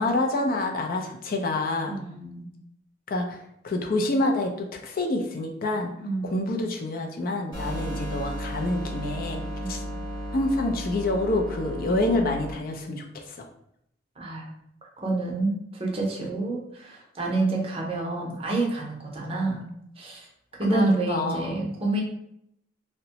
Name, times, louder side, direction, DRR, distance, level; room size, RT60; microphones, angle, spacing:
voice 1, 0.0-2.0 3.1-3.4 3.6-5.9 6.3-9.4 9.7-9.8 10.3-13.4 20.6-21.6, left 2 dB, 50° left, 2 dB, 0.4 m, -27 dB
voice 2, 1.9-2.5 6.0-6.5 9.6-9.9 14.2-14.5 15.0-19.7 20.0-20.3 20.5-22.0, right 2 dB, 30° right, -2 dB, 0.6 m, -28 dB
sound 1, 7.5-12.5, equal, 25° left, 1.0 m, -34 dB
2.8 x 2.1 x 2.8 m, 0.76 s
head